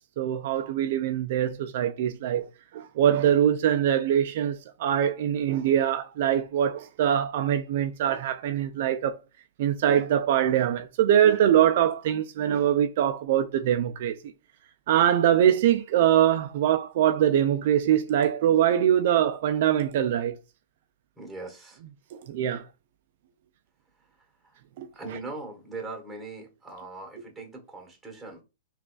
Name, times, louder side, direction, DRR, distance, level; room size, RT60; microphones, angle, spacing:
voice 1, 0.2-2.5 2.7-9.2 9.6-14.1 14.9-20.4 22.1-22.6 24.8-24.9, right 10 dB, 55° right, 0.3 m, -23 dB
voice 2, 21.2-21.8 24.4-24.6 24.9-28.4, right 3 dB, 5° right, 1.3 m, -40 dB
3.9 x 2.3 x 2.3 m
hypercardioid pair, 120°, 0 cm